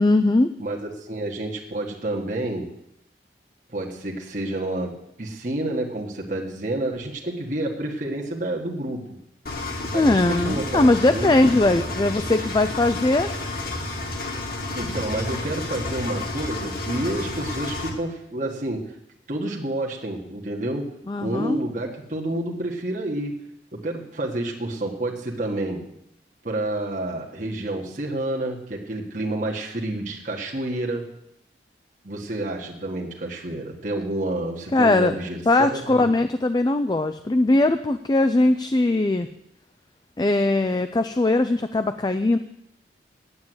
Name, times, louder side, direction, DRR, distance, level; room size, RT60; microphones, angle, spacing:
voice 1, 0.0-0.5 9.9-13.3 21.1-21.6 34.7-35.2 35.5-39.3 40.2-42.4, left 2 dB, 25° left, 9 dB, 0.4 m, -20 dB
voice 2, 0.6-2.7 3.7-9.2 9.9-11.5 12.0-12.1 14.7-18.8 19.3-20.9 21.2-23.3 23.7-25.8 26.4-31.0 32.0-36.1, right 1 dB, 45° right, -1 dB, 1.5 m, -29 dB
Engine, 9.5-17.9, left 2 dB, 55° left, 2.0 m, -31 dB
9.6 x 8.8 x 7.9 m, 0.79 s
head